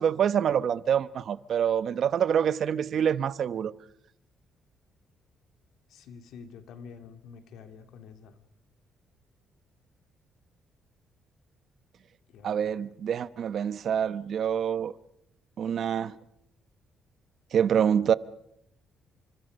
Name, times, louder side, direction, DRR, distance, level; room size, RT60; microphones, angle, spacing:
voice 1, 0.0-3.7 12.4-14.9 15.6-16.1 17.5-18.1, right 8 dB, 60° right, 0.9 m, -26 dB
voice 2, 5.9-8.4 12.3-12.8, left 6 dB, 80° left, 2.8 m, -48 dB
29.5 x 25.5 x 5.4 m
cardioid pair, 90°, 0 cm